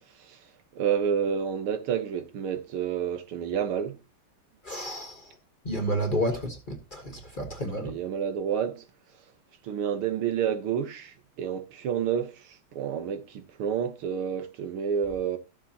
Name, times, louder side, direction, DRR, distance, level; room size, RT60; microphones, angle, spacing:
voice 1, 0.0-4.0 7.7-8.9 9.6-15.4, right 8 dB, 85° right, 2.1 m, -30 dB
voice 2, 4.6-5.2 5.6-7.9, equal, 30° left, 1.3 m, -30 dB
14.0 x 7.1 x 2.9 m
omnidirectional pair, 2.3 m